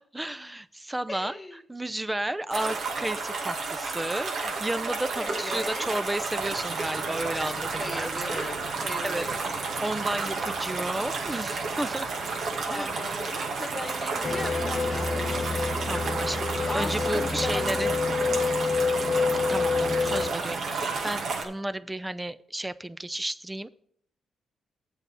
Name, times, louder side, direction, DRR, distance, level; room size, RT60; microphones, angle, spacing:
voice 1, 0.1-1.4 1.7-8.5 9.0-9.3 9.8-12.1 12.7-12.9 15.9-17.9 19.5-23.7, right 1 dB, 15° right, 15 dB, 0.5 m, -33 dB
voice 2, 1.1-1.6 5.2-6.0 7.8-9.6 12.7-15.5 16.7-18.7, left 2 dB, 20° left, 7 dB, 1.6 m, -38 dB
sound 1, 2.5-21.4, right 4 dB, 70° right, 2.0 m, -32 dB
sound 2, 6.4-21.5, right 7 dB, 85° right, 0.8 m, -42 dB
sound 3, 14.2-20.3, left 4 dB, 40° left, 0.8 m, -27 dB
8.1 x 5.6 x 6.8 m, 0.63 s
cardioid pair, 70°, 0 cm